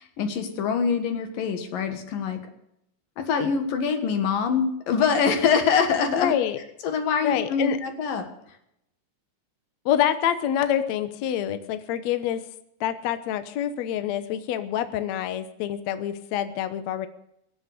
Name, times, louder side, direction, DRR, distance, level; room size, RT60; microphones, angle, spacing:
voice 1, 0.0-2.4 3.2-6.3 6.8-8.2, left 6 dB, 85° left, 6 dB, 3.4 m, -24 dB
voice 2, 6.1-6.6 7.2-7.8 9.9-12.4 12.8-17.1, left 10 dB, 65° left, 10 dB, 1.9 m, -26 dB
23.5 x 7.8 x 6.7 m, 0.77 s
omnidirectional pair, 3.9 m